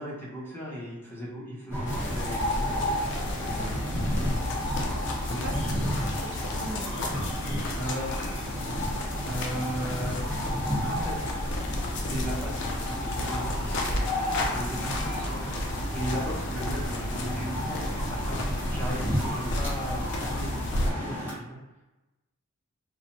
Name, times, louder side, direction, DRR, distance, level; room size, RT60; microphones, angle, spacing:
voice 1, 0.0-2.9 3.5-4.4 5.3-5.9 7.7-8.1 9.2-10.2 10.8-11.3 11.8-14.2 14.5-15.4 15.9-21.6, equal, 10° left, -6 dB, 0.6 m, -37 dB
sound 1, 1.7-21.3, equal, 10° right, 1.0 m, -32 dB
sound 2, 1.9-20.9, left 1 dB, 50° left, 0.4 m, -32 dB
voice 2, 5.2-5.6 5.8-7.3, right 1 dB, 55° right, -2 dB, 0.5 m, -41 dB
sound 3, 9.6-15.1, left 1 dB, 30° right, 1.0 m, -47 dB
2.7 x 2.1 x 2.8 m, 1.1 s
head